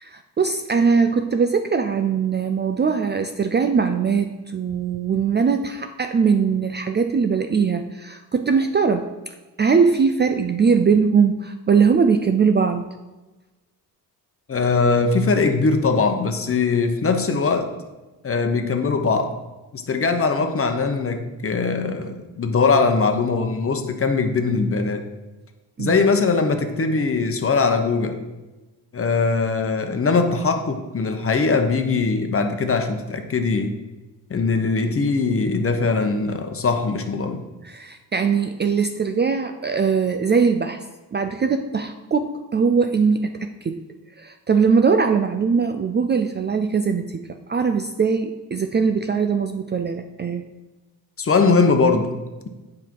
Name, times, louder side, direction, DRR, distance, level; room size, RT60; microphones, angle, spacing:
voice 1, 0.0-9.1 9.6-12.8 25.8-26.0 37.6-40.8 41.1-43.8 44.2-50.4, right 5 dB, 25° right, 7 dB, 0.4 m, -21 dB
voice 2, 14.5-17.7 18.2-19.4 19.7-25.0 25.8-28.2 28.9-33.7 34.3-37.4 51.2-52.5, left 4 dB, 35° left, 6 dB, 1.0 m, -21 dB
8.2 x 5.3 x 4.6 m, 1.1 s
cardioid pair, 90°, 41 cm